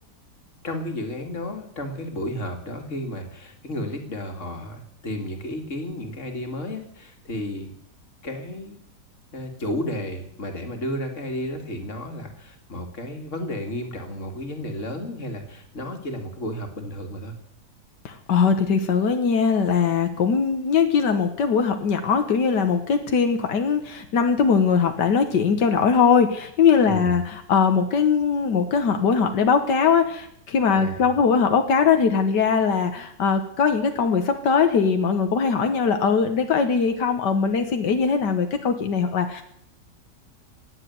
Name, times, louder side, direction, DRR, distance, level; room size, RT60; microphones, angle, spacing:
voice 1, 0.6-7.7 8.2-8.8 9.3-17.4 26.8-27.2 30.7-31.1, left 1 dB, 45° left, 4 dB, 2.7 m, -32 dB
voice 2, 18.0-39.4, left 6 dB, 85° left, 6 dB, 1.9 m, -21 dB
18.5 x 8.2 x 9.5 m, 0.72 s
omnidirectional pair, 1.8 m